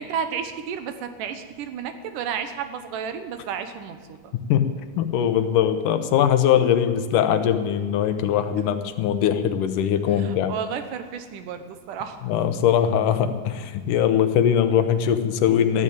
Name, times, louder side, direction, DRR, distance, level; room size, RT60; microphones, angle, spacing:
voice 1, 0.0-4.3 10.2-12.2, right 7 dB, 85° right, 8 dB, 2.7 m, -32 dB
voice 2, 4.5-10.5 12.2-15.8, left 9 dB, 85° left, 9 dB, 2.5 m, -21 dB
14.0 x 11.0 x 8.7 m, 1.5 s
omnidirectional pair, 3.6 m